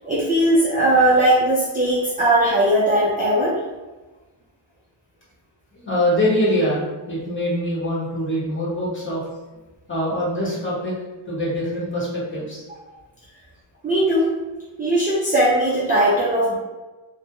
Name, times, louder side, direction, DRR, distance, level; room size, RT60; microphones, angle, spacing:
voice 1, 0.0-3.6 13.8-14.3 14.8-16.5, right 1 dB, 20° right, -9 dB, 0.4 m, -18 dB
voice 2, 5.7-9.2 9.9-10.9 11.2-12.6, equal, 25° left, -7 dB, 0.9 m, -24 dB
2.2 x 2.1 x 2.9 m, 1.2 s
wide cardioid pair, 125°, 48 cm